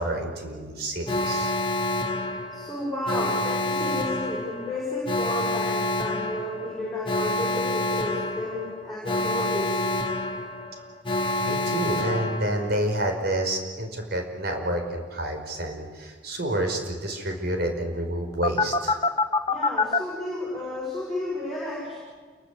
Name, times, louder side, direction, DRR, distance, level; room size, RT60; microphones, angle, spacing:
voice 1, 0.0-1.5 11.4-19.0, right 1 dB, 55° right, 4 dB, 5.1 m, -29 dB
Alarm, 1.1-13.0 18.4-20.0, left 2 dB, 25° left, 1.7 m, -27 dB
voice 2, 2.2-9.9 19.5-22.0, left 1 dB, ahead, -7 dB, 7.1 m, -32 dB
29.5 x 22.5 x 8.4 m, 1.5 s
head